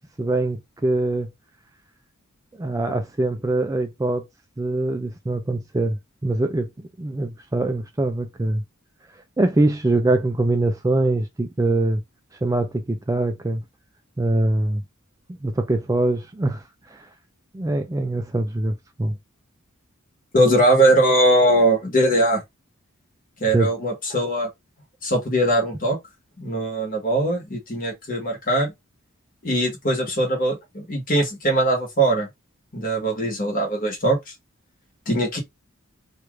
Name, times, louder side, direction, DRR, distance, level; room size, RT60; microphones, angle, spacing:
voice 1, 0.2-1.3 2.6-4.3 4.6-6.0 6.2-6.7 7.0-8.6 9.4-12.0 12.4-13.6 14.2-14.8 15.4-17.1 17.5-19.2 23.5-23.7, right 2 dB, 15° right, 0.3 m, -23 dB
voice 2, 20.3-22.4 23.4-24.5 25.0-26.0 26.4-28.7 29.4-32.3 32.7-34.2 35.1-35.4, right 1 dB, 40° left, 1.4 m, -20 dB
3.1 x 2.4 x 3.1 m
head